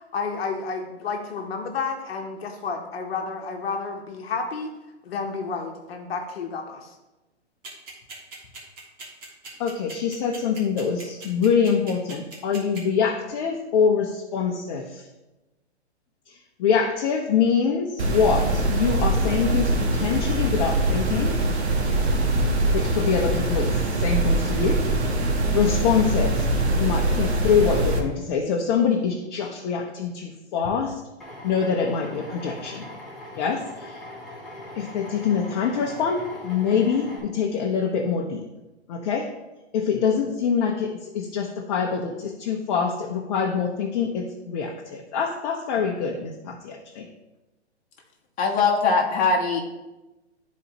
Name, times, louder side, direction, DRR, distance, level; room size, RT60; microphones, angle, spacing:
voice 1, 0.0-4.7 5.0-7.0, left 4 dB, 60° left, 3 dB, 1.1 m, -31 dB
sound 1, 7.6-12.8, right 3 dB, 25° right, 2.0 m, -39 dB
voice 2, 9.6-15.1 16.3-21.4 22.7-25.1 25.5-26.5 26.8-31.0 31.4-32.9 33.4-34.0 34.7-38.4 38.9-39.3 39.7-47.1, left 6 dB, 40° left, 1 dB, 0.8 m, -25 dB
sound 2, 18.0-28.0, right 2 dB, 70° right, 1.4 m, -23 dB
Drill, 31.2-37.2, left 1 dB, ahead, 2.1 m, -41 dB
voice 3, 48.4-49.6, left 4 dB, 20° left, -1 dB, 1.3 m, -21 dB
12.5 x 4.2 x 2.9 m, 1.1 s
hypercardioid pair, 120°, 34 cm